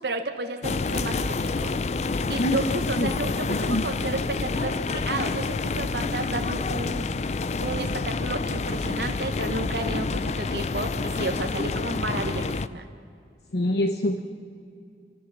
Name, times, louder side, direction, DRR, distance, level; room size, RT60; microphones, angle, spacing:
voice 1, 0.0-1.8 2.3-7.3 7.6-12.9, right 2 dB, 75° right, 5 dB, 1.4 m, -32 dB
sound 1, 0.6-12.7, left 3 dB, 40° left, 0.4 m, -28 dB
voice 2, 3.5-3.8 13.5-14.2, left 1 dB, 70° left, 6 dB, 1.0 m, -25 dB
27.0 x 14.0 x 7.3 m, 2.4 s
head